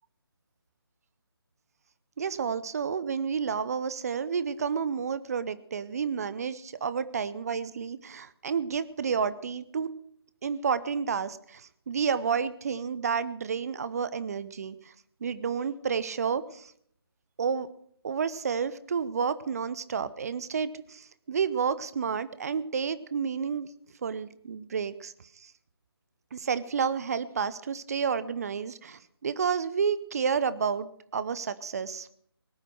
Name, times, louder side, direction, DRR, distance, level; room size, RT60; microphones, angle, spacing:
voice 1, 2.2-9.9 10.4-14.9 15.2-16.7 17.4-17.7 18.0-23.7 24.0-25.5 26.3-32.1, right 6 dB, 40° right, 15 dB, 0.8 m, -30 dB
19.0 x 8.8 x 6.3 m, 0.64 s
figure-of-eight pair, 150°, 13 cm